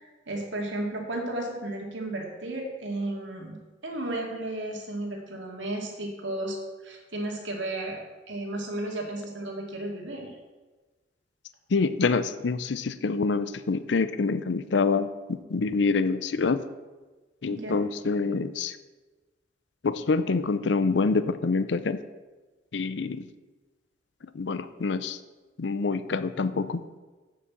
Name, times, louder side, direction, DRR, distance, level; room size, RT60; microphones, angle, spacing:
voice 1, 0.0-3.6 3.8-6.6 6.8-8.0 8.3-10.3 17.5-17.8, right 1 dB, 85° right, 0 dB, 2.2 m, -33 dB
voice 2, 11.7-16.6 17.4-18.8 19.8-22.0 22.7-23.3 24.3-25.2 25.6-26.8, left 4 dB, 70° left, 13 dB, 0.5 m, -26 dB
7.7 x 6.7 x 7.4 m, 1.2 s
head